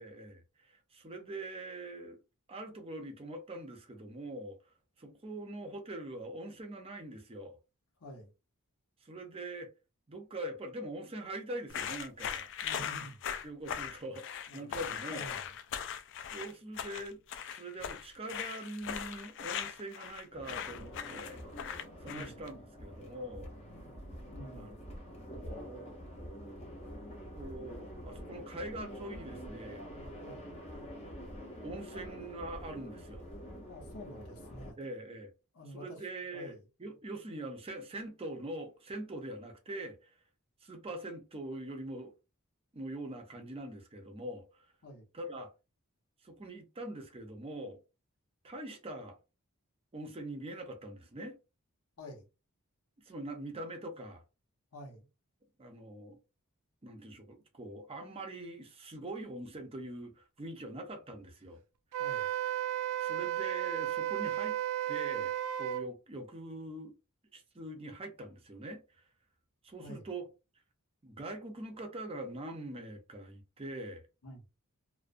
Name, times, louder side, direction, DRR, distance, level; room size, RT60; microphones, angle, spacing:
voice 1, 0.0-2.2 2.5-4.6 5.0-7.6 9.0-9.7 10.1-12.5 13.4-14.3 14.5-15.2 16.3-17.2 17.5-21.4 22.0-23.5 24.5-24.8 25.1-25.3 27.4-29.8 31.6-33.3 34.8-35.3 35.7-40.1 40.6-42.1 42.7-44.5 45.1-45.5 46.2-47.8 48.4-49.2 49.9-51.4 53.1-54.2 55.6-56.2 56.8-61.6 63.0-64.6 64.9-65.3 65.6-66.9 67.3-68.8 69.6-70.2 71.0-74.0, right 1 dB, 25° right, 0.5 m, -43 dB
voice 2, 8.0-8.3 12.6-13.2 14.5-15.5 22.0-22.3 24.3-24.7 30.2-30.5 33.7-34.8 35.5-36.0 36.3-36.7 44.8-45.1 52.0-52.3 54.7-55.0 62.0-62.3 69.8-70.1 74.2-74.4, equal, 80° left, 0.8 m, -48 dB
sound 1, 11.7-22.5, left 8 dB, 60° left, 0.3 m, -39 dB
sound 2, 20.3-34.7, equal, 30° left, 0.7 m, -46 dB
Wind instrument woodwind instrument, 61.9-65.8, right 12 dB, 75° right, 0.3 m, -34 dB
2.4 x 2.1 x 2.5 m
head